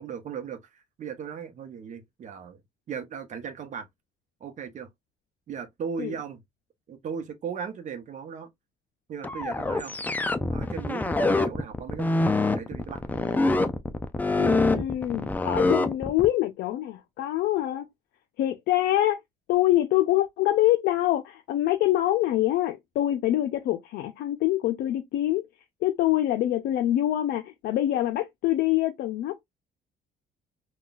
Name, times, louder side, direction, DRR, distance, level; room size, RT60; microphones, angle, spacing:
voice 1, 0.0-2.6 2.9-3.9 4.4-4.9 5.5-6.4 6.9-8.5 9.1-9.9 10.5-13.0, right 7 dB, 45° right, 0.8 m, -37 dB
sound 1, 9.2-16.3, left 2 dB, 10° left, 0.4 m, -25 dB
voice 2, 14.4-17.9 18.4-19.2 19.5-25.4 25.8-29.4, left 14 dB, 70° left, 0.5 m, -25 dB
3.8 x 2.3 x 2.3 m
cardioid pair, 110°, 17 cm